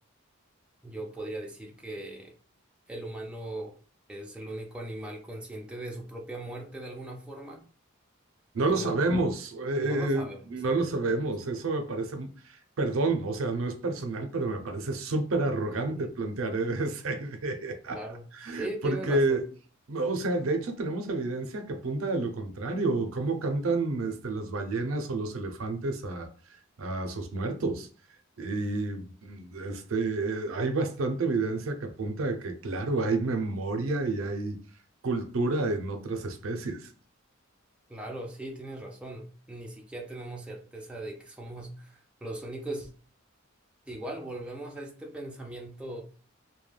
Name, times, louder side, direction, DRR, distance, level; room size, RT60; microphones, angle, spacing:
voice 1, 0.8-2.3 2.9-3.7 4.1-7.6 8.7-8.9 9.7-11.2 15.7-16.1 17.9-19.4 37.9-42.9 43.9-46.0, right 1 dB, 5° right, 0.4 m, -39 dB
voice 2, 8.5-18.0 18.3-19.4 19.9-26.3 26.8-27.9 28.4-34.6 35.0-36.9, right 2 dB, 80° right, 0.5 m, -29 dB
2.2 x 2.2 x 3.2 m
head